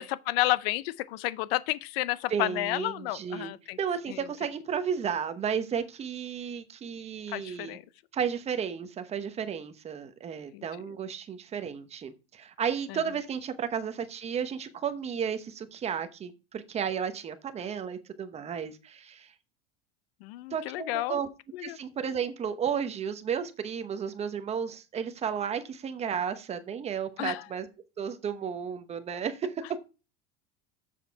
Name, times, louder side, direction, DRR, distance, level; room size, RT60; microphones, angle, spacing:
voice 1, 0.0-3.8 4.1-4.3 7.3-7.8 10.5-10.9 12.9-13.0 20.2-21.2 21.5-21.8 27.2-27.4, left 18 dB, 75° left, 0.6 m, -31 dB
voice 2, 2.3-3.5 3.8-7.8 8.1-19.3 20.5-21.3 21.6-27.7 28.0-29.8, right 7 dB, 20° right, 0.9 m, -33 dB
7.6 x 6.5 x 4.6 m
supercardioid pair, 155°, 30 cm